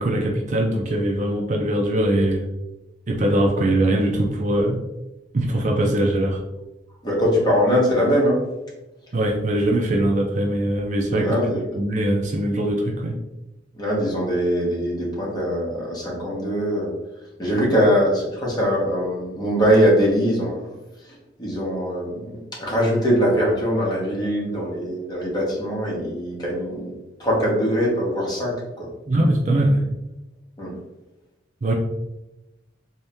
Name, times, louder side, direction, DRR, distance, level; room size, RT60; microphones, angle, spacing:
voice 1, 0.0-2.4 3.1-4.8 5.3-6.4 9.1-11.5 11.7-13.1 29.1-29.8 31.6-31.7, right 1 dB, 40° right, 1 dB, 0.5 m, -21 dB
voice 2, 7.0-8.4 11.1-11.8 13.8-16.9 17.4-20.7 21.4-26.9 27.2-28.9 30.6-30.7, equal, 20° left, -4 dB, 1.2 m, -22 dB
3.6 x 2.8 x 3.4 m, 0.98 s
head